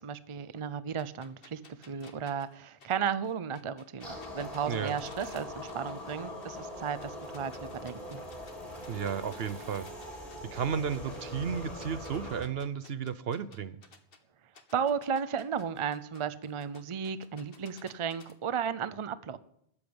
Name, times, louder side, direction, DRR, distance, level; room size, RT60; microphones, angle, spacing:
voice 1, 0.0-1.6 1.9-8.2 14.7-19.4, right 7 dB, 35° right, 15 dB, 0.6 m, -34 dB
sound 1, 1.0-6.1 6.4-8.5 8.8-14.2 14.5-18.3, left 4 dB, 60° left, 1.6 m, -56 dB
sound 2, 4.0-12.4, left 1 dB, 35° left, 3.9 m, -42 dB
voice 2, 4.6-5.0 8.9-9.9 10.4-13.8, right 7 dB, 65° right, 15 dB, 0.9 m, -33 dB
13.0 x 8.5 x 8.7 m, 0.71 s
omnidirectional pair, 1.1 m